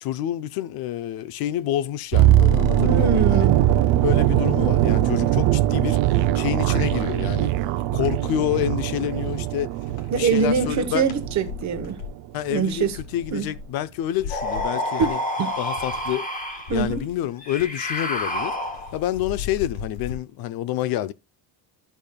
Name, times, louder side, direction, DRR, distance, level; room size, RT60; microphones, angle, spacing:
voice 1, 0.0-3.5 4.0-7.5 7.9-9.7 10.1-11.1 12.3-15.2 15.6-16.3 16.7-18.5 18.9-21.1, left 12 dB, 50° left, 0.5 m, -28 dB
sound 1, 2.1-8.2 8.8-9.4 9.7-16.2 16.4-17.8 18.1-20.2, left 6 dB, 70° left, 2.0 m, -40 dB
sound 2, 2.1-12.1 12.4-12.6, right 13 dB, 60° right, 0.6 m, -21 dB
voice 2, 2.8-3.7 10.1-12.0 12.5-13.0 13.3-13.5 15.0-15.6 16.7-17.0, right 6 dB, 35° right, 0.9 m, -24 dB
sound 3, 14.3-16.8 17.4-19.1, left 1 dB, 15° left, 1.3 m, -28 dB
13.0 x 5.1 x 2.2 m
cardioid pair, 150°, 48 cm